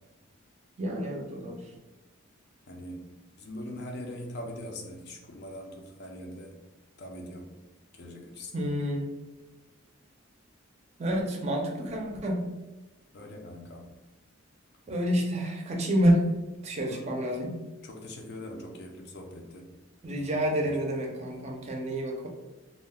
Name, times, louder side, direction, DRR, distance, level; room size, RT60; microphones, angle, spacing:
voice 1, 0.8-1.6 8.5-9.1 11.0-12.5 14.9-16.3 16.6-17.6 20.0-22.3, equal, 35° right, 1 dB, 0.4 m, -28 dB
voice 2, 2.7-6.6 7.0-7.6 7.9-8.7 13.1-14.0 16.8-17.3 17.8-19.7 20.1-20.8, left 1 dB, 55° left, 1 dB, 0.5 m, -42 dB
2.4 x 2.1 x 3.4 m, 1.1 s
head